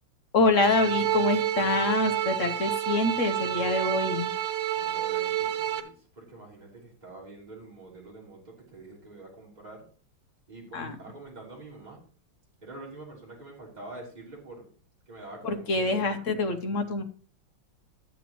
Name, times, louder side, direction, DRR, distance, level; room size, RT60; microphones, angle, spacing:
voice 1, 0.3-4.3 10.7-10.9 15.4-17.0, left 3 dB, 50° left, 6 dB, 1.0 m, -26 dB
sound 1, 0.5-5.8, right 12 dB, 80° right, 1.8 m, -29 dB
voice 2, 4.8-9.8 10.5-12.0 12.6-14.7 15.1-16.5, right 2 dB, 20° right, -4 dB, 3.5 m, -46 dB
13.0 x 8.2 x 3.0 m, 0.43 s
omnidirectional pair, 2.3 m